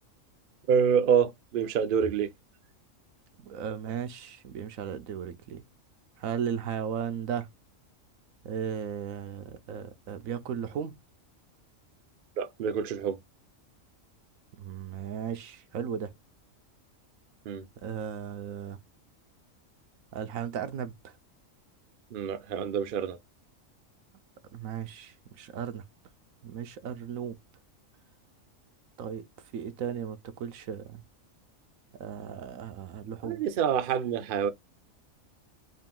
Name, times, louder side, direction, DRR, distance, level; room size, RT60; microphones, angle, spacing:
voice 1, 0.7-2.3 12.4-13.2 17.5-17.7 22.1-23.2 33.2-34.5, right 7 dB, 55° right, 0.6 m, -27 dB
voice 2, 3.4-5.6 6.2-7.5 8.4-10.9 14.6-16.1 17.8-18.8 20.1-21.1 24.5-25.8 26.4-27.4 29.0-29.2 29.5-31.0 32.0-33.4, right 8 dB, 90° right, 1.1 m, -36 dB
3.8 x 2.5 x 3.6 m
omnidirectional pair, 1.4 m